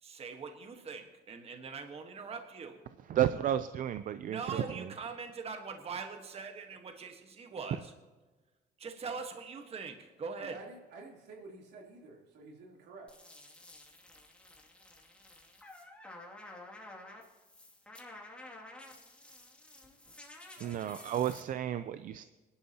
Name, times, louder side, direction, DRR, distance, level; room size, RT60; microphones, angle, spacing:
voice 1, 0.0-2.8 4.2-7.9 8.8-10.6, right 5 dB, 35° right, 5 dB, 1.4 m, -42 dB
voice 2, 3.1-4.6 20.6-22.2, right 11 dB, 50° right, 12 dB, 0.5 m, -32 dB
voice 3, 10.4-13.1 20.6-20.9, right 3 dB, 80° right, -1 dB, 3.3 m, -51 dB
sound 1, 13.1-21.4, left 2 dB, 5° left, 2.5 m, -52 dB
22.0 x 11.5 x 2.9 m, 1.2 s
cardioid pair, 110°, 17 cm